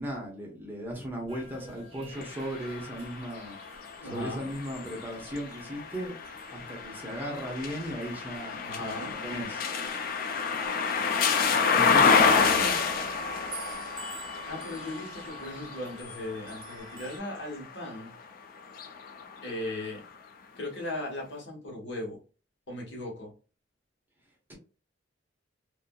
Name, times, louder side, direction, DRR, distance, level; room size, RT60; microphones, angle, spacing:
voice 1, 0.0-3.6 4.0-6.1 6.5-9.7 11.7-12.8 24.5-24.6, equal, 10° right, -1 dB, 0.8 m, -37 dB
sound 1, 1.3-17.2, right 1 dB, 30° right, 1.1 m, -47 dB
sound 2, 2.1-18.1 18.6-19.9, left 5 dB, 50° left, 0.4 m, -29 dB
voice 2, 4.0-4.5 8.6-9.1 14.4-18.1 19.4-20.0 20.5-22.2 22.7-23.3, left 1 dB, 65° left, -2 dB, 1.2 m, -37 dB
2.7 x 2.6 x 2.2 m, 0.35 s
head